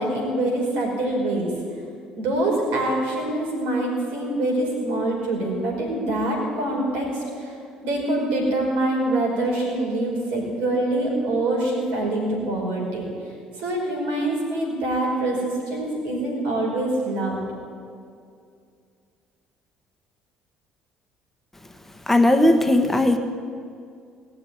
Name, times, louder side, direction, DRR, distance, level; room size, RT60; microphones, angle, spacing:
voice 1, 0.0-1.5 2.2-7.5 7.8-13.0 13.6-17.4, right 1 dB, 75° right, 0 dB, 4.9 m, -25 dB
voice 2, 22.1-23.2, left 1 dB, 10° left, 6 dB, 1.3 m, -17 dB
19.0 x 6.9 x 9.7 m, 2.3 s
hypercardioid pair, 65°, 3 cm